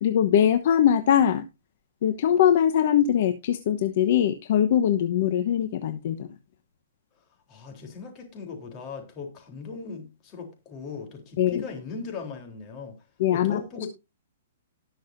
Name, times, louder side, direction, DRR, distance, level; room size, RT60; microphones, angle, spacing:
voice 1, 0.0-1.4 2.0-6.3 11.4-11.6 13.2-13.6, left 9 dB, 55° left, 1.0 m, -22 dB
voice 2, 7.5-12.9 13.3-13.9, left 5 dB, 30° left, 3.5 m, -38 dB
19.0 x 6.4 x 2.6 m
hypercardioid pair, 150°, 0 cm